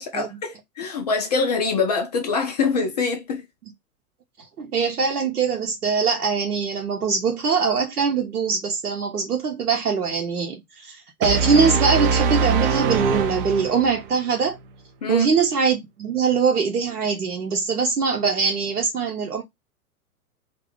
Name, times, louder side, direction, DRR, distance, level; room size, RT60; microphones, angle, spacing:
voice 1, 0.0-3.4 15.0-15.3, left 4 dB, 30° left, 0.4 m, -24 dB
voice 2, 4.6-14.6 15.1-19.4, right 5 dB, 80° right, 0.8 m, -22 dB
sound 1, 11.2-14.1, right 5 dB, 40° right, 0.4 m, -22 dB
2.5 x 2.2 x 3.5 m
figure-of-eight pair, 105°, 45 cm